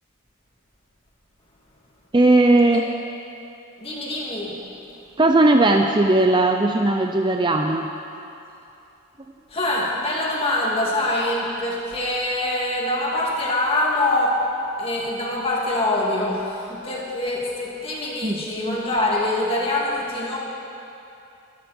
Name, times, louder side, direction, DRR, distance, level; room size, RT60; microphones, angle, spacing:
voice 1, 2.1-2.9 5.2-7.9 18.2-18.4, right 2 dB, 20° right, 4 dB, 0.5 m, -17 dB
voice 2, 3.8-4.6 9.5-14.4 14.8-20.4, left 1 dB, 25° left, -3 dB, 2.5 m, -24 dB
24.0 x 12.5 x 4.4 m, 2.7 s
head